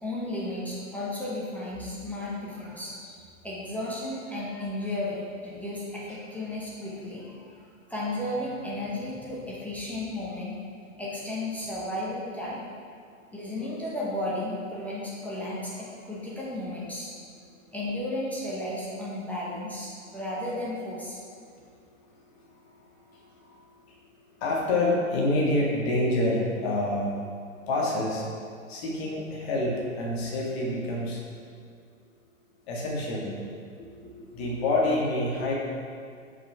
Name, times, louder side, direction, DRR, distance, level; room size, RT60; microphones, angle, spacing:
voice 1, 0.0-7.6 7.9-10.5 11.0-12.6 13.3-17.1 17.7-21.2, left 1 dB, 5° left, -7 dB, 1.0 m, -34 dB
voice 2, 22.1-23.6 23.9-27.1 27.7-28.3 28.7-31.2 32.7-33.3 33.7-35.5, left 2 dB, 50° left, -3 dB, 1.8 m, -28 dB
6.7 x 5.1 x 4.4 m, 2.2 s
figure-of-eight pair, 105°, 41 cm